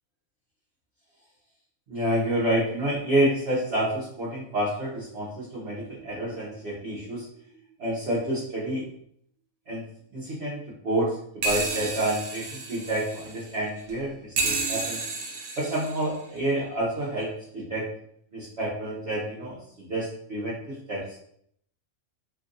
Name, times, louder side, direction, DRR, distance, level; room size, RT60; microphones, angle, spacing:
voice 1, 1.9-7.2 7.8-8.8 9.7-9.8 10.1-15.0 15.6-17.8 18.3-19.6 19.9-21.0, right 1 dB, 55° right, -7 dB, 1.1 m, -28 dB
sound 1, 5.7-6.8 7.2-7.3 7.6-7.7 11.4-13.9 14.4-16.4 17.2-17.3, right 3 dB, 90° right, 1.2 m, -32 dB
3.0 x 2.5 x 3.7 m, 0.67 s
omnidirectional pair, 1.5 m